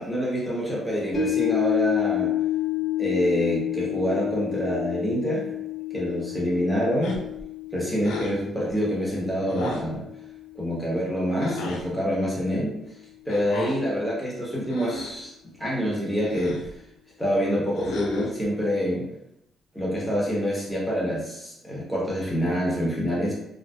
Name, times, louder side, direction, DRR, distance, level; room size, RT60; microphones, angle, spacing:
voice 1, 0.0-2.3 3.0-5.5 5.9-7.2 7.7-10.0 10.5-12.7 13.2-15.3 15.6-16.6 17.2-19.1 19.7-23.3, equal, 5° left, -6 dB, 1.0 m, -26 dB
sound 1, 1.1-11.5 11.9-12.0, left 12 dB, 40° left, 0.8 m, -30 dB
sound 2, 7.0-7.4 8.0-8.4 9.5-9.9 11.4-11.8 13.3-13.8 14.6-15.2 16.2-16.7 17.7-18.4, left 3 dB, 90° left, 0.4 m, -34 dB
2.6 x 2.2 x 2.2 m, 0.81 s
cardioid pair, 90°, 0 cm